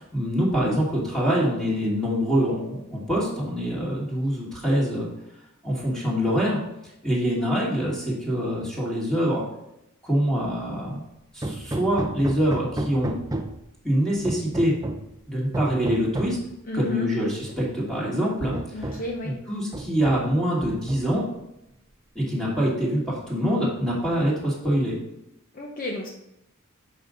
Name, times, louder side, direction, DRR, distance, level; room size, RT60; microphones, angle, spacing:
voice 1, 0.1-5.1 5.6-6.6 7.0-9.4 10.0-11.0 11.3-13.1 13.8-14.7 15.3-16.4 16.7-18.6 19.2-21.2 22.1-25.0, equal, 5° left, -6 dB, 2.4 m, -24 dB
Hammer, 11.4-13.7 14.2-15.1 15.5-16.5 17.5-17.6 18.0-18.1 18.5-19.2 19.7-20.3 20.6-21.3, right 1 dB, 15° right, 0.5 m, -32 dB
voice 2, 16.6-17.1 18.7-19.3 25.5-26.1, left 1 dB, 40° left, 0 dB, 0.8 m, -32 dB
7.8 x 5.3 x 3.9 m, 0.85 s
head